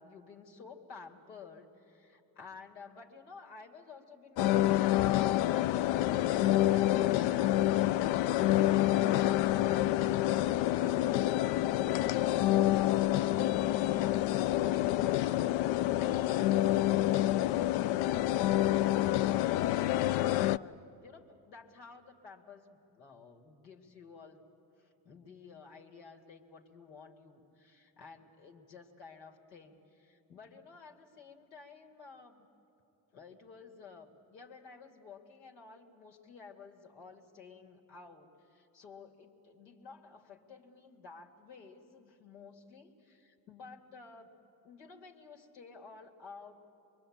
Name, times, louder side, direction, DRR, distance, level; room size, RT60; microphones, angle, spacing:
voice 1, 0.0-11.6 11.8-24.4 24.8-32.5 33.1-44.3 44.6-46.6, left 4 dB, 85° left, 1 dB, 2.4 m, -53 dB
sound 1, 4.4-20.6, left 14 dB, 60° left, 0.6 m, -27 dB
24.5 x 22.5 x 8.7 m, 2.9 s
hypercardioid pair, 70°, 48 cm